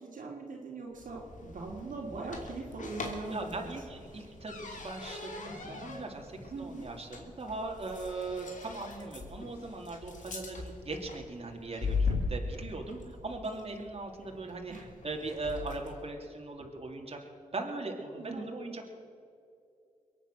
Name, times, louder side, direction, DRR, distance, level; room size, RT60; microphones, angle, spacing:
voice 1, 0.0-3.7 6.5-6.9 14.7-14.9 18.2-18.5, right 3 dB, 65° right, -2 dB, 2.9 m, -41 dB
sound 1, 0.9-16.0, left 4 dB, 60° left, 2.8 m, -40 dB
voice 2, 3.3-14.7 15.0-17.2 17.5-18.9, right 3 dB, 40° right, 2 dB, 2.7 m, -39 dB
22.5 x 9.0 x 6.2 m, 2.5 s
cardioid pair, 55°, 15 cm